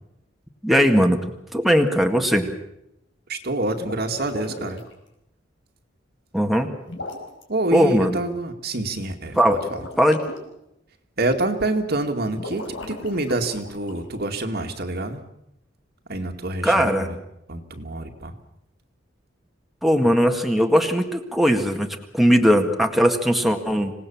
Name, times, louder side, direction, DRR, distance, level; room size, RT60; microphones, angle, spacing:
voice 1, 0.6-1.2 1.5-2.5 6.3-6.7 7.7-8.2 9.4-9.6 10.0-10.2 16.6-17.1 19.8-21.9 22.1-23.9, equal, ahead, 3 dB, 1.9 m, -19 dB
voice 2, 3.3-4.8 7.5-9.4 9.7-9.8 11.2-15.2 16.1-17.2 17.5-18.3, right 2 dB, 55° right, 5 dB, 2.3 m, -27 dB
sound 1, 3.7-4.9 6.8-7.4 9.2-10.4 12.3-14.0, left 2 dB, 75° left, 5.2 m, -37 dB
26.0 x 18.5 x 7.2 m, 0.82 s
head